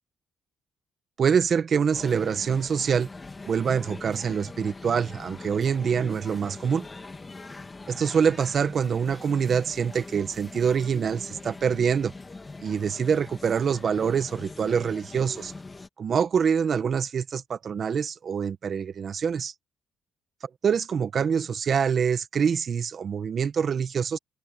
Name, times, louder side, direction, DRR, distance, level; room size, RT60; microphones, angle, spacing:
voice 1, 1.2-3.1 3.5-6.8 7.9-12.1 12.6-15.5 16.0-19.5 20.6-24.2, right 7 dB, 50° right, 1.6 m, -25 dB
sound 1, 1.9-15.9, left 3 dB, 25° left, 2.4 m, -42 dB
open air
cardioid pair, 90°, 0 cm